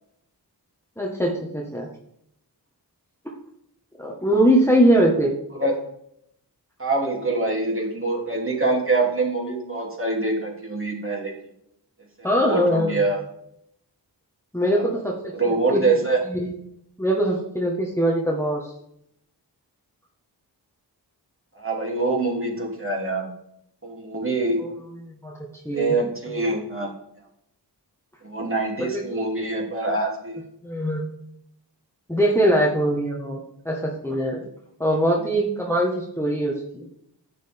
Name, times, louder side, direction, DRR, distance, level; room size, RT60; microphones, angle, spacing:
voice 1, 1.0-1.9 4.0-5.3 12.2-13.1 14.5-15.8 16.2-16.5 17.0-18.7 24.6-24.7 25.2-25.3 25.6-25.9 28.8-29.3 30.6-31.0 32.1-33.4 33.6-34.4 34.8-36.9, equal, 5° left, -2 dB, 1.6 m, -22 dB
voice 2, 6.8-11.3 12.2-13.2 14.7-14.8 15.3-16.2 21.5-23.3 23.8-24.6 25.7-26.9 28.2-30.4, right 3 dB, 30° right, -2 dB, 3.1 m, -24 dB
10.5 x 7.7 x 3.6 m, 0.74 s
cardioid pair, 45°, 42 cm